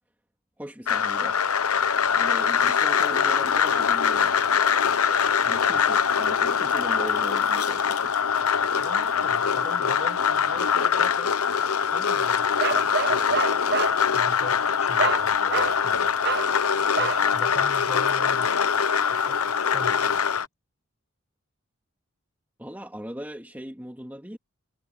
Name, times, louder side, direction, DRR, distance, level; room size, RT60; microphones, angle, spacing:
voice 1, 0.6-1.4 2.1-4.4 5.4-8.1 22.6-24.4, equal, 10° right, 2.5 m, -39 dB
sound 1, 0.9-20.5, left 7 dB, 85° left, 0.9 m, -23 dB
voice 2, 5.4-6.1 8.8-11.4 11.9-13.7 14.0-16.2 17.0-18.6 19.1-20.5, left 1 dB, 30° left, 6.0 m, -42 dB
Bark, 12.6-14.0 15.0-15.2 15.5-15.8 16.2-16.5 17.0-17.2, right 5 dB, 50° right, 1.3 m, -27 dB
head